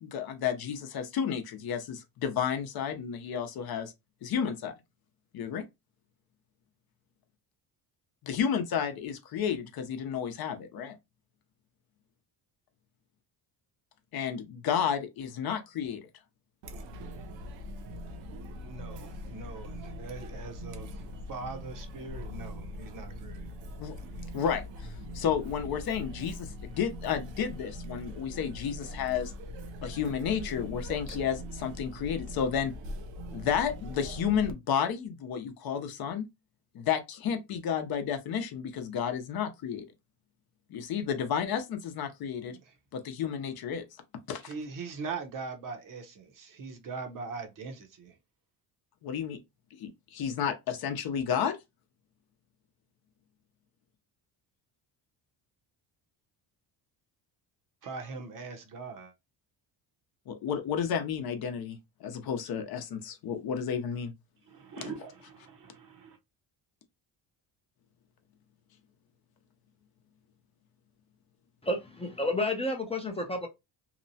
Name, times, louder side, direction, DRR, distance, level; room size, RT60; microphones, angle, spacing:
voice 1, 0.0-3.9 4.2-4.7 5.3-5.6 8.2-11.0 14.1-16.0 23.8-23.9 24.3-29.3 29.8-32.7 33.3-36.3 36.7-39.9 40.7-42.6 42.9-43.9 44.3-44.5 49.0-49.4 49.8-51.6 60.3-64.1 64.8-64.9, left 8 dB, 55° left, 0.7 m, -32 dB
Chatter, 16.6-34.5, left 1 dB, 85° right, 0.6 m, -42 dB
voice 2, 18.5-21.0 21.3-23.5 42.5-42.7 44.4-48.2 57.8-59.1 64.5-66.2, right 4 dB, 50° right, 0.8 m, -41 dB
voice 3, 71.6-73.5, left 1 dB, 15° left, 0.5 m, -31 dB
2.8 x 2.1 x 2.7 m
cardioid pair, 125°, 43 cm